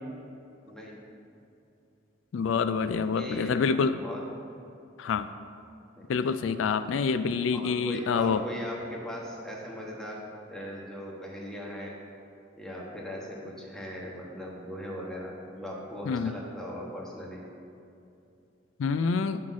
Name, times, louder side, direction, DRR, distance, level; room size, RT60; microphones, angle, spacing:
voice 1, 0.6-1.0 3.1-4.2 6.0-6.3 7.5-10.2 10.5-12.0 12.5-17.4, equal, 5° left, -4 dB, 1.2 m, -39 dB
voice 2, 2.3-3.9 5.0-5.3 6.1-8.4 16.1-16.3 18.8-19.4, left 5 dB, 80° left, 11 dB, 0.3 m, -27 dB
7.7 x 5.7 x 6.2 m, 2.7 s
head